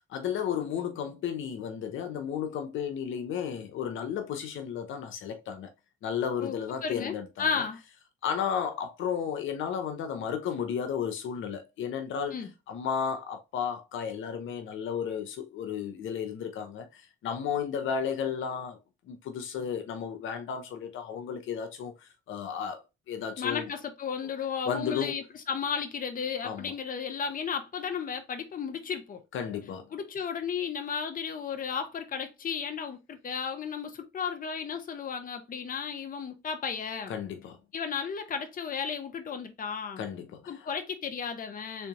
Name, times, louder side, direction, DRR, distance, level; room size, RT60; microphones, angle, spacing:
voice 1, 0.1-5.7 6.0-7.3 7.6-7.7 8.2-12.3 12.7-18.8 19.1-22.8 23.1-23.7 24.7-25.2 26.4-26.7 29.3-29.9 37.1-37.6 40.0-40.7, left 7 dB, 75° left, 0.8 m, -33 dB
voice 2, 6.8-7.8 12.3-12.5 23.4-29.2 29.9-37.1 37.7-40.0 40.5-41.9, left 6 dB, 45° left, 0.9 m, -34 dB
3.6 x 3.3 x 2.9 m
cardioid pair, 90°, 20 cm